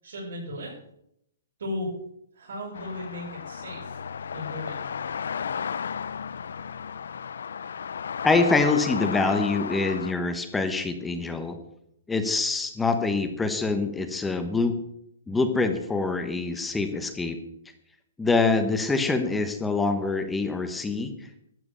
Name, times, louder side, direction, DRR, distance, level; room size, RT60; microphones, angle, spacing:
voice 1, 0.0-0.7 1.6-1.9 2.3-4.0 4.3-4.8, left 1 dB, 70° right, -6 dB, 6.3 m, -35 dB
sound 1, 2.7-10.1, left 7 dB, 80° left, 0.5 m, -34 dB
voice 2, 8.2-11.6 12.1-14.7 15.3-17.4 18.2-21.1, left 3 dB, 5° left, 7 dB, 1.1 m, -25 dB
12.5 x 7.9 x 6.7 m, 0.75 s
hypercardioid pair, 160°, 0 cm